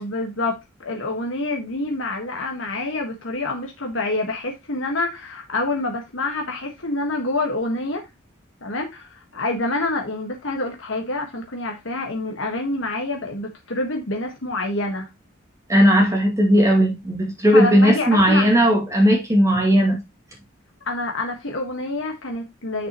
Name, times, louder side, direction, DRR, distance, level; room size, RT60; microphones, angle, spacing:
voice 1, 0.0-8.1 8.6-15.1 17.5-18.5 20.8-22.9, left 2 dB, 70° left, 1.6 m, -27 dB
voice 2, 15.7-20.0, equal, 15° right, 2.2 m, -16 dB
9.0 x 6.3 x 3.0 m
head